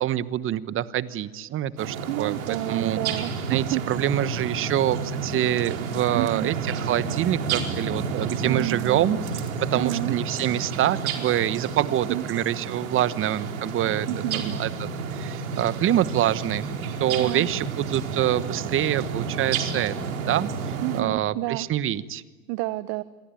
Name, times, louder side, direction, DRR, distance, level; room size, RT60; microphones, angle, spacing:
voice 1, 0.0-3.0 3.5-6.5 6.9-9.2 9.6-14.1 14.3-16.7 17.0-20.5 20.9-22.2, right 12 dB, 30° right, 15 dB, 1.2 m, -25 dB
sound 1, 1.8-21.0, right 5 dB, 70° right, 4.5 m, -31 dB
voice 2, 1.9-4.0 4.3-4.4 6.1-6.5 8.4-9.1 9.7-10.2 12.1-12.2 14.1-14.4 17.2-17.5 20.8-21.7 22.5-23.0, right 19 dB, 45° right, 16 dB, 0.9 m, -30 dB
28.0 x 22.5 x 9.2 m, 1.3 s
hypercardioid pair, 110°, 43 cm